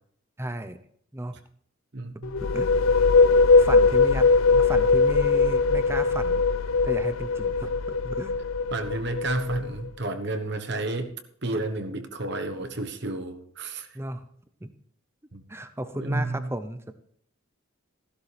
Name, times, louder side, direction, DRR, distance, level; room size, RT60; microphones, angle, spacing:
voice 1, 0.4-0.8 1.1-1.4 2.4-2.7 3.6-4.3 4.6-6.4 6.8-7.7 8.0-8.3 11.5-11.6 13.9-14.3 14.6-14.7 15.5-16.9, right 1 dB, 10° right, 10 dB, 0.7 m, -34 dB
voice 2, 1.9-2.4 8.7-11.2 11.4-13.9 15.3-15.4 16.0-16.5, right 2 dB, 55° right, 7 dB, 1.2 m, -31 dB
sound 1, 2.2-9.9, left 4 dB, 70° left, 0.4 m, -21 dB
15.0 x 11.5 x 3.4 m, 0.64 s
head